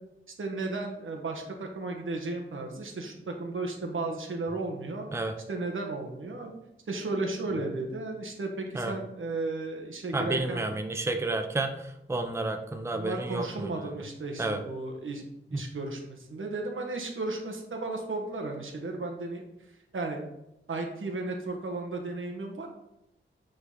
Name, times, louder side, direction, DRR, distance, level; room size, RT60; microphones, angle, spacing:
voice 1, 0.4-5.1 5.5-6.5 6.9-10.6 12.9-19.4 19.9-20.2 20.7-22.7, right 2 dB, 75° right, 2 dB, 1.2 m, -34 dB
voice 2, 10.1-13.9 14.4-14.6 15.5-15.6, right 2 dB, 15° right, 5 dB, 0.6 m, -31 dB
8.9 x 3.9 x 3.8 m, 0.86 s
wide cardioid pair, 100°, 21 cm